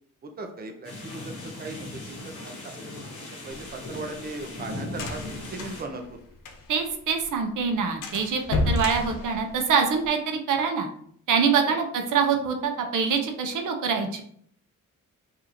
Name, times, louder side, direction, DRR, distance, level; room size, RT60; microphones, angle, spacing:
voice 1, 0.2-2.8 3.2-5.2 5.5-6.2 11.7-11.8, right 3 dB, 30° right, 4 dB, 0.6 m, -38 dB
sound 1, 0.8-5.8, left 2 dB, 45° left, 1.4 m, -38 dB
sound 2, 3.5-6.9 7.2-7.3 7.6-7.7 8.0-10.1, left 2 dB, 90° left, 0.8 m, -31 dB
voice 2, 6.7-10.9 11.3-14.2, right 6 dB, 70° right, 4 dB, 0.8 m, -25 dB
5.0 x 2.7 x 2.9 m, 0.65 s
cardioid pair, 135°, 32 cm